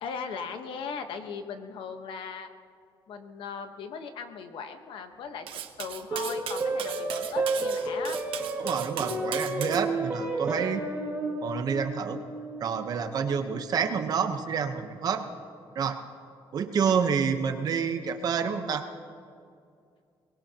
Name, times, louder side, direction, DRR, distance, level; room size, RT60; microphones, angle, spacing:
voice 1, 0.0-2.5 3.1-5.5 5.8-8.2, left 6 dB, 65° left, 7 dB, 1.2 m, -38 dB
Cutlery silverware, 5.5-9.8, right 10 dB, 80° right, 0.9 m, -38 dB
sound 1, 6.1-14.7, right 2 dB, 20° right, 2.1 m, -32 dB
voice 2, 8.6-10.9 11.4-12.2 12.6-15.2 15.7-16.0 16.5-18.8, right 6 dB, 45° right, 7 dB, 1.0 m, -28 dB
23.0 x 20.5 x 2.9 m, 2.4 s
cardioid pair, 170°, 9 cm